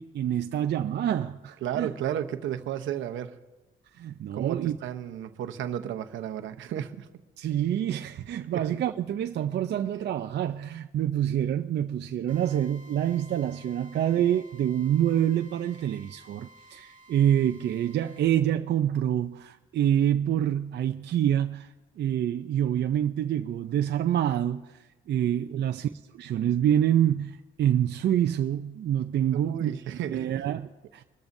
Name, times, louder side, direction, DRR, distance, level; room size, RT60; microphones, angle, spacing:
voice 1, 0.0-1.9 4.0-4.8 7.4-21.7 22.0-24.6 25.1-25.9 26.1-31.0, right 10 dB, 60° right, 0.6 m, -26 dB
voice 2, 1.6-3.3 4.3-7.1 8.5-8.8 25.5-25.7 29.3-30.4, right 10 dB, 80° right, 0.9 m, -33 dB
Drill, 12.3-18.3, right 1 dB, 25° right, 3.5 m, -54 dB
24.5 x 13.5 x 2.7 m
cardioid pair, 90°, 20 cm